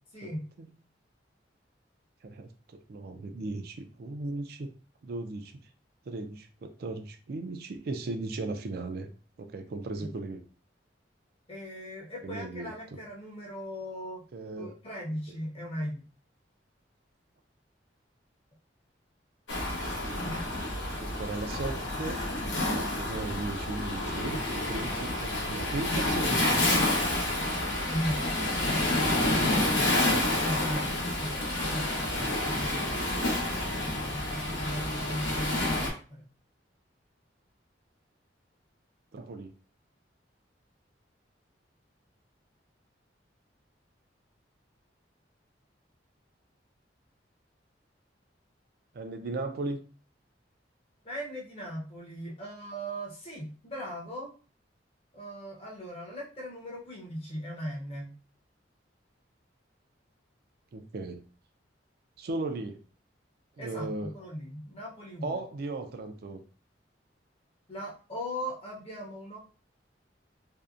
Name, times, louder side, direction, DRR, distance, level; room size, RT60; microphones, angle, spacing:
voice 1, 0.1-0.4 10.0-10.1 11.5-14.2 14.6-16.1 27.9-28.3 28.6-28.9 30.4-30.9 31.2-33.0 33.7-36.2 51.0-54.3 55.1-58.1 63.6-65.4 67.7-69.4, equal, 35° left, -3 dB, 0.7 m, -38 dB
voice 2, 2.2-4.7 5.0-5.6 6.1-9.1 9.4-10.4 12.2-12.7 14.3-14.7 20.0-20.4 21.0-22.2 22.7-26.5 30.7-30.9 39.1-39.5 48.9-49.8 60.7-61.2 62.2-62.8 63.6-64.1 65.2-66.4, right 2 dB, 55° right, 7 dB, 0.4 m, -37 dB
Waves surf, 19.5-35.9, left 1 dB, 90° left, 0.9 m, -29 dB
2.6 x 2.1 x 2.4 m, 0.38 s
head